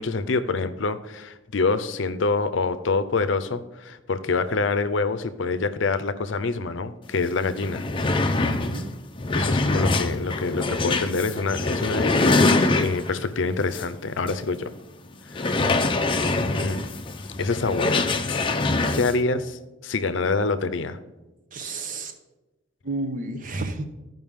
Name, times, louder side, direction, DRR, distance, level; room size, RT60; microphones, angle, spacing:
voice 1, 0.0-7.8 9.3-14.7 15.3-15.6 16.4-16.8 17.4-18.6 18.9-21.0, left 3 dB, 70° left, 11 dB, 0.6 m, -26 dB
sound 1, 7.2-7.3 7.5-13.2 13.7-13.9 14.3-14.4 15.3-19.2, left 2 dB, 25° left, 0.5 m, -24 dB
voice 2, 8.4-8.9 15.6-15.9 21.5-22.2 22.8-23.9, right 2 dB, 45° right, 8 dB, 0.8 m, -31 dB
14.5 x 5.4 x 3.6 m, 1.1 s
head